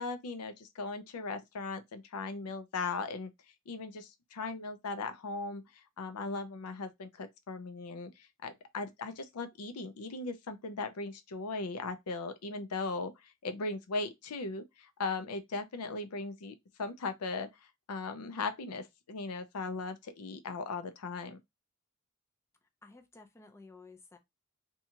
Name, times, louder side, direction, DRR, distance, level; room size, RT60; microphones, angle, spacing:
voice 1, 0.0-3.3 3.7-17.5 17.9-21.4, left 3 dB, 85° left, 0.5 m, -38 dB
voice 2, 22.8-24.2, left 3 dB, 10° left, 0.4 m, -54 dB
2.8 x 2.3 x 2.7 m
head